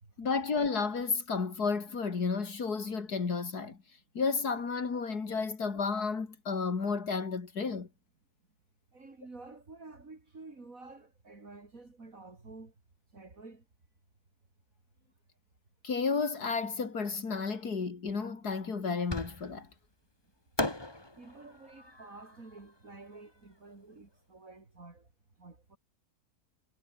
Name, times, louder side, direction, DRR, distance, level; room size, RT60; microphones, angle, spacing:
voice 1, 0.2-3.8 4.1-7.9 15.8-19.7, left 5 dB, 85° left, 3.1 m, -32 dB
voice 2, 8.9-12.7 13.1-13.6 21.2-25.1 25.4-25.8, right 3 dB, 60° right, 4.2 m, -50 dB
Fireworks, 19.1-19.8 20.6-23.7, left 1 dB, 15° left, 2.5 m, -38 dB
omnidirectional pair, 1.6 m